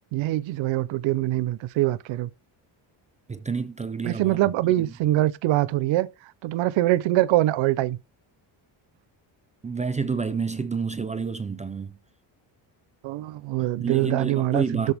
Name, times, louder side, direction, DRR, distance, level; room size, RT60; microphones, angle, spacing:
voice 1, 0.1-2.3 4.0-6.1 6.4-8.0 13.0-14.9, right 16 dB, 75° right, 0.7 m, -23 dB
voice 2, 3.3-4.4 9.6-12.0 13.6-14.9, right 5 dB, 15° right, 0.4 m, -29 dB
13.0 x 4.6 x 3.4 m
cardioid pair, 160°, 46 cm